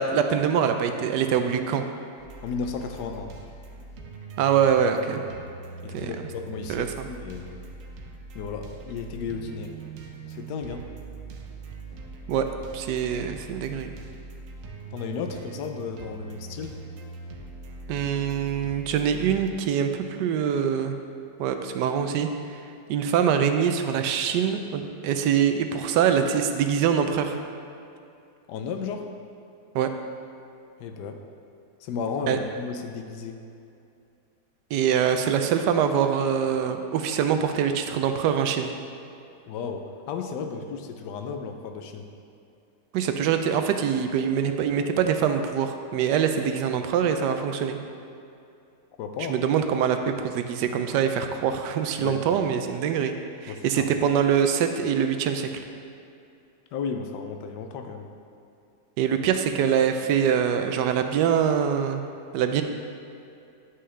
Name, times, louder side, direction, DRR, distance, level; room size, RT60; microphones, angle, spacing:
voice 1, 0.0-1.8 4.4-5.2 5.9-6.1 6.7-7.1 12.3-12.5 12.7-13.9 17.9-21.0 21.4-22.6 22.9-27.4 29.7-29.9 32.3-32.4 34.7-38.7 42.9-47.8 49.3-53.2 53.4-55.6 59.0-62.0 62.3-62.6, right 8 dB, 85° right, 7 dB, 1.2 m, -24 dB
sound 1, 2.2-19.5, right 3 dB, 60° right, 1.0 m, -42 dB
voice 2, 2.4-3.3 5.8-7.6 8.3-9.7 10.3-10.9 14.9-16.8 28.5-29.1 30.8-31.2 31.8-33.4 39.5-42.1 49.0-49.4 52.0-52.4 53.5-53.9 56.7-58.1, left 5 dB, 85° left, 5 dB, 1.2 m, -34 dB
9.7 x 5.5 x 3.3 m, 2.6 s
omnidirectional pair, 1.8 m